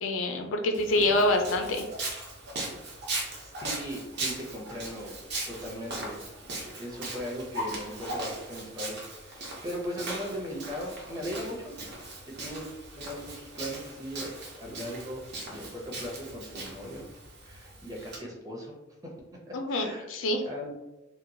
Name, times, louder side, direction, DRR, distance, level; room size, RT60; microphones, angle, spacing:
voice 1, 0.0-1.8 19.5-20.4, left 1 dB, 70° left, 4 dB, 0.4 m, -26 dB
Walk footsteps, 0.7-18.2, right 2 dB, 55° right, 0.7 m, -39 dB
voice 2, 3.4-5.2 5.5-6.2 6.7-11.7 12.3-12.7 12.9-17.1 17.4-18.7 19.7-20.1 20.4-20.8, equal, 20° right, -2 dB, 0.6 m, -38 dB
2.9 x 2.2 x 2.6 m, 0.99 s
head